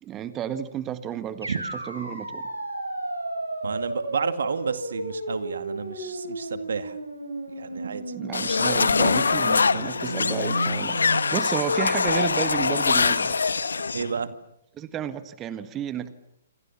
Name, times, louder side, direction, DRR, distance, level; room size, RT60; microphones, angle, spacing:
voice 1, 0.0-2.4 8.1-11.0 11.3-13.4 14.7-16.1, right 9 dB, 20° right, 13 dB, 1.6 m, -32 dB
sound 1, 1.4-11.3, right 1 dB, 85° right, 7.7 m, -33 dB
voice 2, 3.6-6.9 7.6-8.1 13.9-14.3, right 6 dB, 65° right, 12 dB, 2.1 m, -31 dB
sound 2, 8.3-14.1, left 4 dB, 70° left, 1.5 m, -23 dB
27.5 x 27.0 x 7.2 m, 0.79 s
figure-of-eight pair, 120°, 0 cm